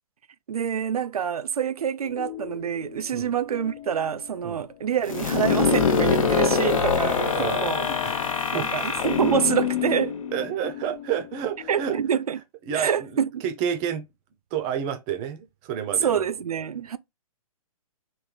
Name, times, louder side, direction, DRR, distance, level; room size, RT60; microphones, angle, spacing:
voice 1, 0.5-7.9 8.3-10.1 11.7-12.4 12.7-13.4 16.0-17.0, right 8 dB, 80° right, 0.4 m, -26 dB
sound 1, 2.0-12.1, left 13 dB, 35° left, 0.5 m, -43 dB
sound 2, 5.1-10.8, left 6 dB, 60° left, 0.9 m, -24 dB
voice 2, 10.3-12.0 12.7-14.0 14.5-16.2, right 9 dB, 30° right, 0.7 m, -30 dB
3.2 x 2.6 x 3.8 m
hypercardioid pair, 125°, 19 cm